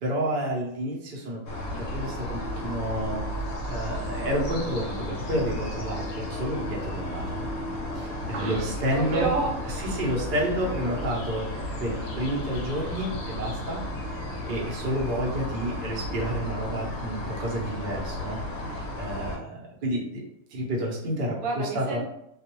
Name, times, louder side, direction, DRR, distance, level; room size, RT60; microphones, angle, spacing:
voice 1, 0.0-3.2 3.7-7.4 7.9-9.3 9.9-11.4 11.8-13.8 14.5-20.2 20.5-22.0, equal, 50° right, -3 dB, 0.6 m, -30 dB
sound 1, 1.5-19.4, left 1 dB, 70° left, 0.9 m, -33 dB
voice 2, 8.3-10.1 10.6-11.0 21.4-22.1, right 3 dB, 80° right, -1 dB, 1.1 m, -31 dB
2.4 x 2.1 x 2.9 m, 0.80 s
omnidirectional pair, 1.4 m